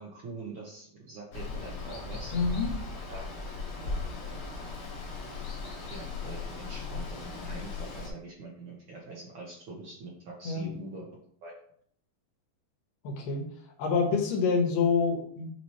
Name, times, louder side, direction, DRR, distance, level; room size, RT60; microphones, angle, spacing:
voice 1, 0.0-2.4 3.1-3.3 3.8-3.9 4.2-4.5 5.9-11.1 11.4-11.5, right 2 dB, 85° right, -3 dB, 1.1 m, -44 dB
Water, 1.3-8.1, left 4 dB, 55° left, 1.7 m, -37 dB
voice 2, 2.3-2.7 10.4-10.6 13.0-13.5 13.8-15.5, left 5 dB, 80° left, 2 dB, 2.8 m, -27 dB
7.9 x 3.0 x 4.2 m, 0.63 s
omnidirectional pair, 3.9 m